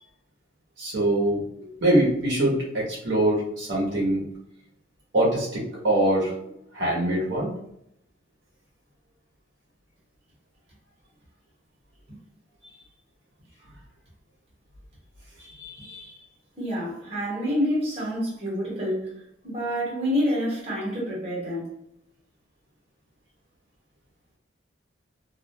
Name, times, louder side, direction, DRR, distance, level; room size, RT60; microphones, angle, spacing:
voice 1, 0.8-4.2 5.1-6.4 6.7-7.5 15.6-16.1, right 1 dB, 65° right, -5 dB, 0.8 m, -24 dB
voice 2, 16.6-19.1 19.4-21.7, equal, 30° right, -5 dB, 1.0 m, -27 dB
2.3 x 2.1 x 2.7 m, 0.76 s
head